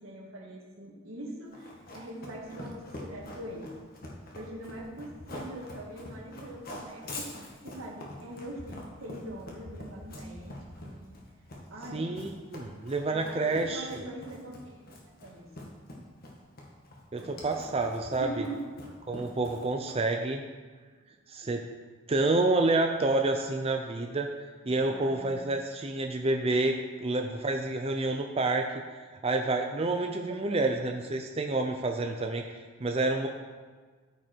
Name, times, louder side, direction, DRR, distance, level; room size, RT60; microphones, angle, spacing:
voice 1, 0.0-3.7 4.3-10.6 10.8-11.2 11.7-12.2 13.1-14.8 15.2-15.5 17.2-17.5 18.2-18.6 24.6-25.4 30.3-30.6, right 1 dB, 80° right, -2 dB, 1.9 m, -42 dB
Run, 1.5-20.2, left 1 dB, 45° left, 1.6 m, -44 dB
voice 2, 11.9-13.9 17.1-18.5 19.1-20.4 21.3-21.6 22.1-24.3 24.7-26.7 27.0-28.7 29.2-32.4 32.8-33.3, right 2 dB, 30° right, 3 dB, 0.5 m, -28 dB
13.5 x 5.3 x 4.5 m, 1.5 s
head